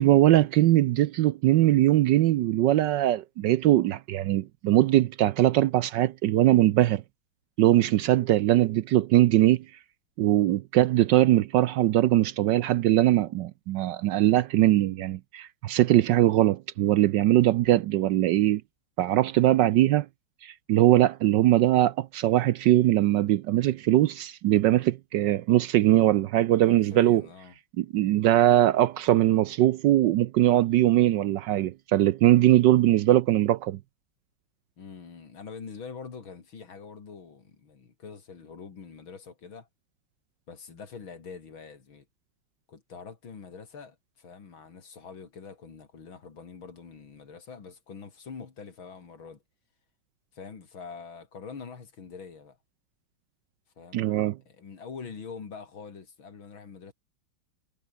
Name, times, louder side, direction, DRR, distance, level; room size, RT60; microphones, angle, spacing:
voice 1, 0.0-7.0 7.6-9.6 10.2-18.6 19.0-20.1 20.4-27.2 27.8-33.8 53.9-54.4, right 14 dB, 70° right, 1.1 m, -21 dB
voice 2, 7.8-8.1 26.7-27.6 34.8-39.7 40.5-42.1 42.7-49.4 50.3-52.6 53.8-54.1 54.5-56.9, left 5 dB, 75° left, 3.6 m, -44 dB
omnidirectional pair, 2.3 m